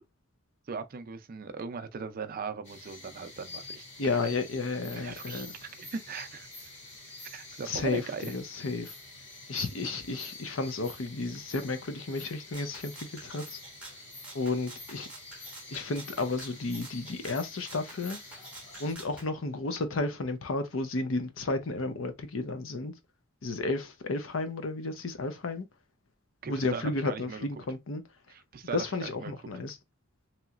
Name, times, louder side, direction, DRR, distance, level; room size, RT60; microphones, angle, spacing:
voice 1, 0.7-3.8 4.2-4.3 4.9-6.5 7.2-8.3 26.4-27.5 28.3-29.3, right 5 dB, 45° right, 0.4 m, -39 dB
sound 1, 2.6-19.0, left 3 dB, 35° left, 2.0 m, -47 dB
voice 2, 4.0-5.5 7.7-8.9 9.5-13.6 14.3-15.1 15.7-18.2 18.8-22.9 23.4-25.7 26.5-28.0 28.7-29.8, left 3 dB, 70° left, 0.6 m, -32 dB
Rattle (instrument), 12.5-19.3, right 2 dB, 5° right, 0.8 m, -48 dB
3.1 x 2.8 x 2.4 m
head